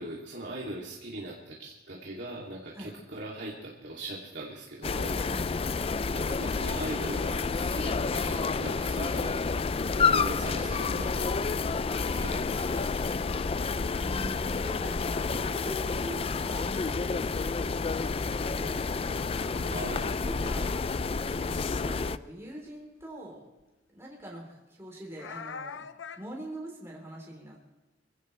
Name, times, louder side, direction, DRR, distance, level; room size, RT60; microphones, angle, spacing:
voice 1, 0.0-5.2 6.1-9.4 9.9-11.4 12.1-12.9 19.7-20.2, right 1 dB, 65° right, -4 dB, 2.7 m, -40 dB
sound 1, 4.8-22.2, left 4 dB, 30° left, 0.4 m, -29 dB
voice 2, 5.3-5.7 8.9-9.0 14.0-20.7 21.4-23.4 23.9-25.8 26.2-27.7, right 1 dB, 15° right, -2 dB, 3.6 m, -43 dB
sound 2, 21.5-21.8 23.0-23.1 23.6-23.7 25.2-26.3, left 6 dB, 80° left, 0.7 m, -41 dB
25.5 x 16.0 x 3.3 m, 1.1 s
head